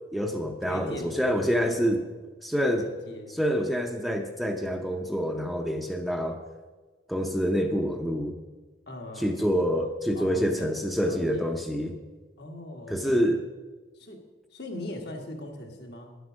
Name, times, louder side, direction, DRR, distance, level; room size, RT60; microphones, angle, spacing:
voice 1, 0.1-2.0 2.4-2.9 3.3-6.4 7.1-8.3 9.2-11.9 12.9-13.4, equal, ahead, 3 dB, 0.7 m, -27 dB
voice 2, 0.7-2.0 2.8-3.4 8.9-9.3 10.2-10.7 11.0-11.6 12.4-13.2 13.9-14.2 14.5-16.2, left 1 dB, 65° left, 2 dB, 1.8 m, -40 dB
10.5 x 8.0 x 6.3 m, 1.3 s
head